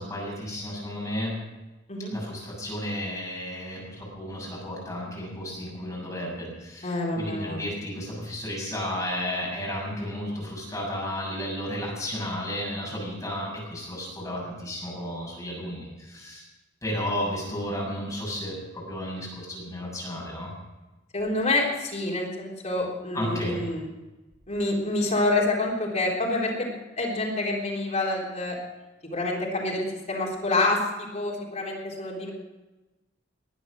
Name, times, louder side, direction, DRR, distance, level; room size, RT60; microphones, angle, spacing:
voice 1, 0.0-1.4 2.1-16.4 16.8-20.5 23.1-23.7, left 1 dB, 15° left, -4 dB, 7.0 m, -33 dB
voice 2, 6.8-7.6 21.1-23.8 24.5-26.7 27.0-28.6 29.1-32.3, left 2 dB, 40° left, -3 dB, 3.6 m, -27 dB
20.5 x 10.5 x 6.2 m, 1.1 s
head